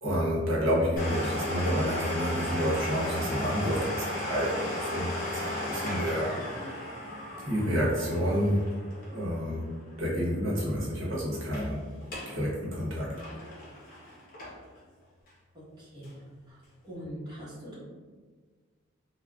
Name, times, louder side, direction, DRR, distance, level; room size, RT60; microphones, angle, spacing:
voice 1, 0.0-6.4 7.5-8.7 9.1-11.8 12.3-13.2, equal, 70° right, -6 dB, 0.9 m, -29 dB
Domestic sounds home sounds, 1.0-10.4 10.6-10.7 11.3-11.7 12.0-12.4 12.7-14.8 15.3-15.4 16.0-16.1, left 1 dB, 45° left, 0.8 m, -35 dB
voice 2, 15.5-16.1 16.5-16.6 16.8-17.8, equal, 20° right, -10 dB, 1.0 m, -42 dB
3.6 x 2.2 x 2.3 m, 1.5 s
head